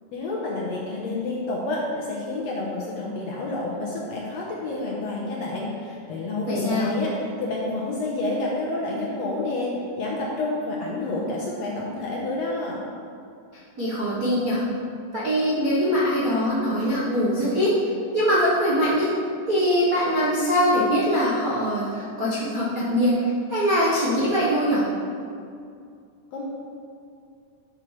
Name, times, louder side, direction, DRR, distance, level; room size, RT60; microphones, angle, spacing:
voice 1, 0.1-7.1 7.4-12.8 26.3-26.4, left 2 dB, 65° left, -3 dB, 1.9 m, -29 dB
voice 2, 6.5-6.9 13.8-14.6 15.1-17.7 18.1-19.1 19.5-24.9, equal, 50° right, -9 dB, 1.0 m, -22 dB
11.5 x 7.5 x 3.4 m, 2.4 s
omnidirectional pair, 3.9 m